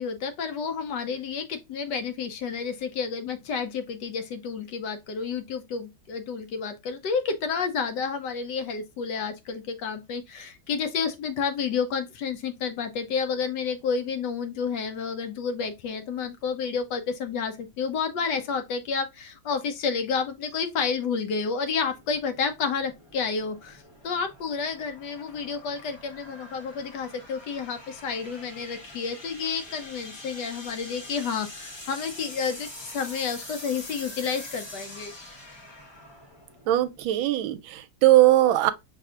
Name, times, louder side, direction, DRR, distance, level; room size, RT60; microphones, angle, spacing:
voice 1, 0.0-35.1, left 5 dB, 70° left, 1.2 m, -30 dB
sound 1, 21.7-37.1, left 1 dB, 30° left, 0.4 m, -45 dB
voice 2, 36.7-38.7, right 15 dB, 85° right, 1.4 m, -20 dB
5.8 x 3.4 x 2.4 m
omnidirectional pair, 2.1 m